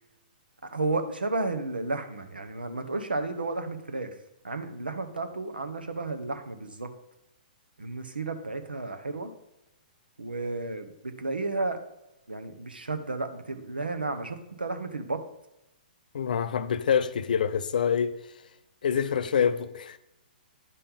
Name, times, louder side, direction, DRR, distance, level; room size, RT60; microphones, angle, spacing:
voice 1, 0.6-4.1 4.4-6.9 7.8-9.3 10.2-11.8 12.3-15.2, right 3 dB, 85° right, 0.9 m, -32 dB
voice 2, 16.1-18.1 18.8-20.0, left 7 dB, 60° left, 0.5 m, -26 dB
10.0 x 5.5 x 3.6 m
figure-of-eight pair, 120°, 5 cm